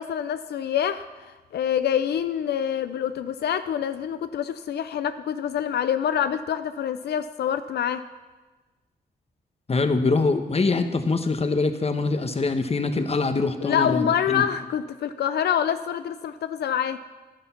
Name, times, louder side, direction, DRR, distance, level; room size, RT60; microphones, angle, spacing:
voice 1, 0.0-8.0 13.6-17.0, left 9 dB, 85° left, 11 dB, 0.4 m, -26 dB
voice 2, 9.7-14.4, left 3 dB, 40° left, 8 dB, 1.1 m, -24 dB
11.0 x 10.0 x 5.7 m, 1.2 s
cardioid pair, 65°, 16 cm